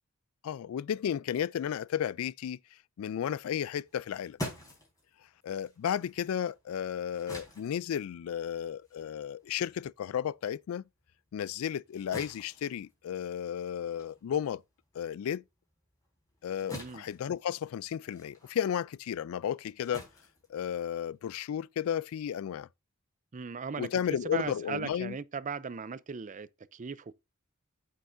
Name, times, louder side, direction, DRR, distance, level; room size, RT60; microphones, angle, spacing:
voice 1, 0.4-2.6 3.0-4.4 5.4-10.8 11.3-14.6 14.9-15.4 16.4-20.1 20.5-22.7 23.8-25.1, left 9 dB, 80° left, 0.3 m, -33 dB
sound 1, 3.8-10.6 11.0-21.2, equal, 15° left, 4.3 m, -47 dB
voice 2, 16.6-17.0 23.3-27.1, right 5 dB, 35° right, 0.5 m, -38 dB
8.6 x 7.7 x 2.6 m
head